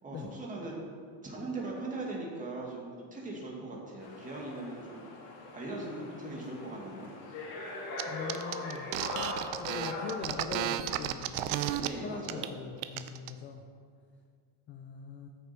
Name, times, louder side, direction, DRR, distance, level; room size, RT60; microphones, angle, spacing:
voice 1, 0.0-0.7 1.2-5.2 5.5-7.1 11.7-12.5, right 2 dB, 15° right, -3 dB, 2.0 m, -40 dB
sound 1, 4.0-10.3, left 2 dB, 75° left, 2.6 m, -40 dB
voice 2, 8.0-9.1 9.6-11.5 12.0-13.7 14.7-15.3, left 5 dB, 25° left, 3 dB, 0.4 m, -41 dB
sound 2, 8.0-8.1 8.3-11.9 12.2-12.5 12.8-13.3, right 12 dB, 60° right, 0.7 m, -33 dB
14.0 x 6.7 x 4.4 m, 2.1 s
cardioid pair, 160°, 48 cm